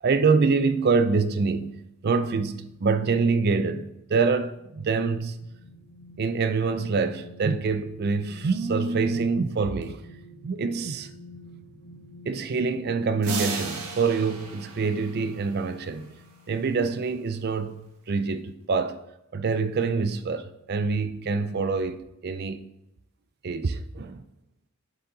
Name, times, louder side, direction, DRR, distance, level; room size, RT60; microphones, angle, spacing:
voice 1, 0.0-5.5 6.2-10.0 10.4-11.1 12.3-16.1 16.5-19.0 19.3-22.7 23.4-24.2, right 4 dB, 45° right, 0.4 m, -25 dB
sound 1, 4.1-16.7 17.2-17.3, left 1 dB, 40° left, 0.9 m, -48 dB
sound 2, 13.2-16.0, right 3 dB, 85° right, 1.4 m, -34 dB
7.3 x 7.0 x 3.9 m
head